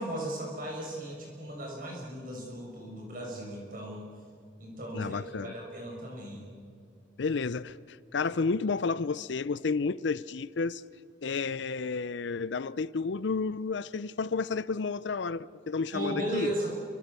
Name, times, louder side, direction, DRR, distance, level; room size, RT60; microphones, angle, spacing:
voice 1, 0.0-4.1 4.6-6.5 15.9-16.7, right 1 dB, 45° right, 6.4 m, -36 dB
voice 2, 4.9-5.5 7.2-10.8 11.2-16.5, left 4 dB, 70° left, 0.5 m, -31 dB
28.5 x 24.0 x 6.9 m
head